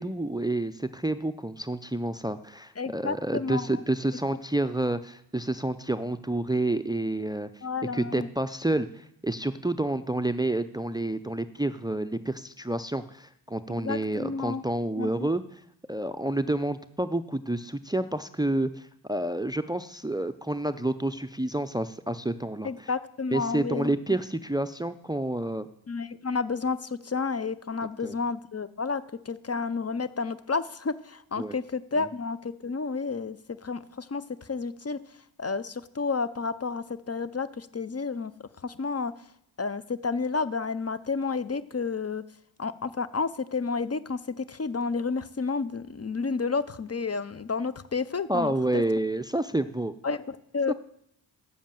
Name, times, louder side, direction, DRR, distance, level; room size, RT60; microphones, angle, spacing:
voice 1, 0.0-7.5 7.9-15.6 15.9-22.9 23.3-25.7 28.0-28.2 31.4-31.5 32.0-32.1 48.3-49.9 50.7-50.8, right 1 dB, 10° right, 12 dB, 0.5 m, -29 dB
voice 2, 2.8-3.7 7.6-8.3 13.8-14.6 15.0-15.3 22.6-23.9 25.9-33.4 33.6-34.2 34.5-35.0 35.4-38.3 38.6-39.1 39.6-42.2 42.6-48.8 50.0-50.7, left 4 dB, 35° left, 15 dB, 0.7 m, -31 dB
8.5 x 7.3 x 7.4 m, 0.75 s
cardioid pair, 45°, 43 cm